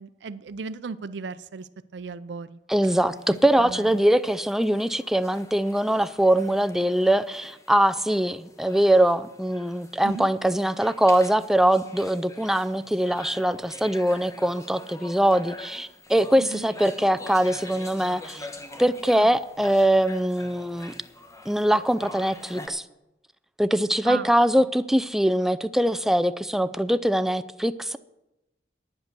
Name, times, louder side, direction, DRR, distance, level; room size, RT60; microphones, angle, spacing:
voice 1, 0.0-2.6 3.6-4.0 10.0-10.3 16.4-16.7 19.1-19.3 24.0-24.3, right 4 dB, 90° right, 0.5 m, -36 dB
voice 2, 2.7-18.5 18.8-20.9 21.5-22.8 23.6-28.0, right 1 dB, ahead, 0.4 m, -22 dB
sound 1, 2.9-22.7, left 2 dB, 20° left, 1.1 m, -45 dB
10.5 x 9.1 x 6.7 m
head